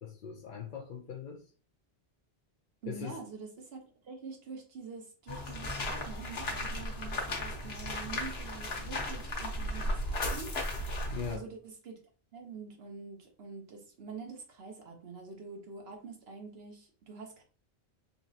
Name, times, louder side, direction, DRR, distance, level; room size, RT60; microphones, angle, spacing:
voice 1, 0.0-1.4 2.8-3.2 11.1-11.4, left 7 dB, 55° left, 0.7 m, -40 dB
voice 2, 2.8-10.5 10.9-12.0 12.3-17.4, right 4 dB, 75° right, 1.2 m, -46 dB
sound 1, 5.3-11.4, left 1 dB, 80° left, 1.2 m, -35 dB
4.0 x 3.0 x 2.8 m
omnidirectional pair, 1.0 m